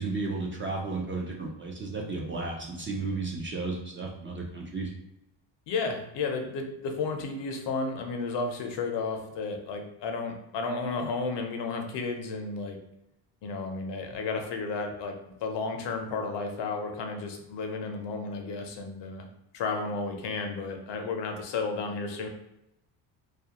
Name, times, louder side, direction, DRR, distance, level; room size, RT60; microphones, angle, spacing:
voice 1, 0.0-4.9, right 3 dB, 30° right, -1 dB, 0.4 m, -33 dB
voice 2, 5.7-12.8 13.4-19.3 19.5-22.3, left 4 dB, 60° left, 4 dB, 0.6 m, -33 dB
2.4 x 2.1 x 2.8 m, 0.86 s
cardioid pair, 95°, 47 cm